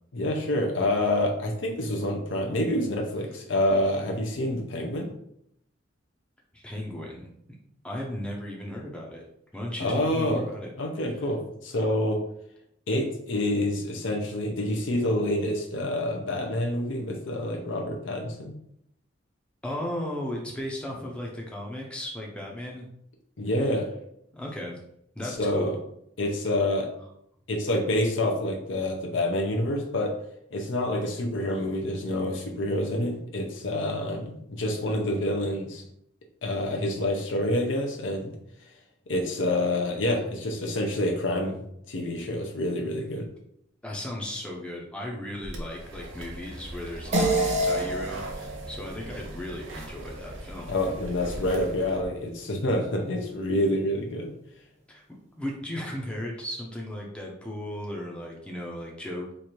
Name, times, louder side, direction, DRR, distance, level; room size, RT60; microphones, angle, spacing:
voice 1, 0.1-5.1 9.8-10.5 10.8-12.2 12.9-18.6 23.4-23.9 25.2-25.7 26.2-26.9 27.5-30.1 30.5-35.8 36.4-38.3 39.1-41.6 41.9-43.3 50.7-54.3, left 1 dB, 75° left, 1 dB, 0.6 m, -27 dB
voice 2, 6.5-7.3 7.8-9.3 9.5-10.7 11.0-11.2 19.6-22.9 24.3-24.7 25.2-25.7 43.2-43.3 43.8-50.8 54.9-55.0 55.4-59.3, left 1 dB, 5° left, -2 dB, 0.5 m, -36 dB
sound 1, 45.4-52.0, right 1 dB, 90° right, 0.8 m, -41 dB
sound 2, 47.1-51.9, right 1 dB, 35° right, 0.7 m, -30 dB
3.1 x 2.5 x 4.3 m, 0.74 s
head